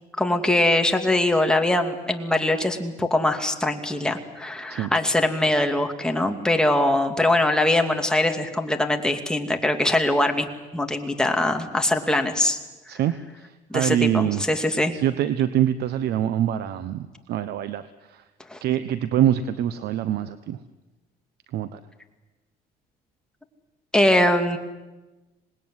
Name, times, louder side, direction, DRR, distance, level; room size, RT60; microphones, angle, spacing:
voice 1, 0.2-12.6 12.9-13.0 13.7-15.0 18.5-18.6 23.9-24.6, left 1 dB, 5° left, 4 dB, 2.6 m, -22 dB
voice 2, 12.9-18.2 18.6-20.6 21.5-21.8, right 11 dB, 70° right, 12 dB, 1.0 m, -25 dB
26.5 x 20.0 x 9.7 m, 1.1 s
cardioid pair, 110°, 17 cm